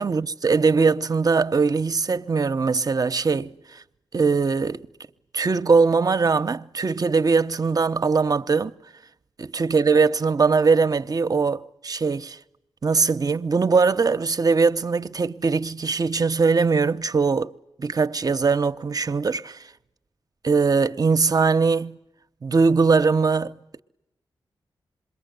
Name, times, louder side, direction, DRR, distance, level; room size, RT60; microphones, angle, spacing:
voice 1, 0.0-3.5 4.1-4.9 5.3-8.7 9.4-12.4 12.8-17.5 17.8-19.6 20.4-22.0 22.4-23.8, right 4 dB, 45° right, 0.9 m, -21 dB
27.0 x 22.5 x 9.4 m
cardioid pair, 65°, 9 cm